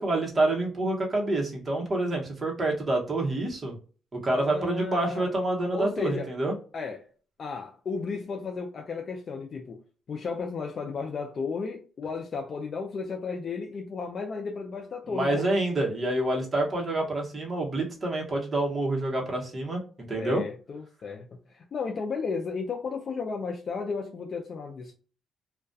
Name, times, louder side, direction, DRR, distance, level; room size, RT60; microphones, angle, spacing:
voice 1, 0.0-3.7 4.1-6.5 15.1-19.8 20.1-20.4, right 2 dB, 30° right, 1.0 m, -27 dB
voice 2, 4.3-5.3 5.7-6.3 6.7-7.1 7.4-9.8 10.1-15.5 20.2-24.9, left 5 dB, 50° left, 0.4 m, -34 dB
2.3 x 2.2 x 2.5 m
cardioid pair, 90°, 0 cm